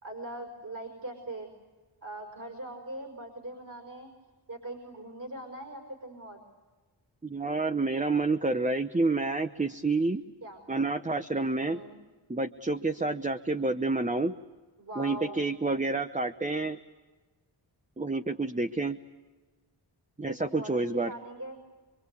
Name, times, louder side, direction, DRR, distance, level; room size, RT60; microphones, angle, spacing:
voice 1, 0.0-1.5 2.0-4.1 4.5-6.4 10.4-10.6 11.6-12.0 14.8-15.5 20.3-21.6, right 1 dB, 45° right, 3 dB, 5.4 m, -41 dB
voice 2, 7.2-10.2 10.7-11.8 12.3-14.3 15.0-16.8 18.0-19.0 20.2-21.1, right 3 dB, 15° right, 8 dB, 0.9 m, -29 dB
25.5 x 24.0 x 8.4 m, 1.3 s
cardioid pair, 70°, 45 cm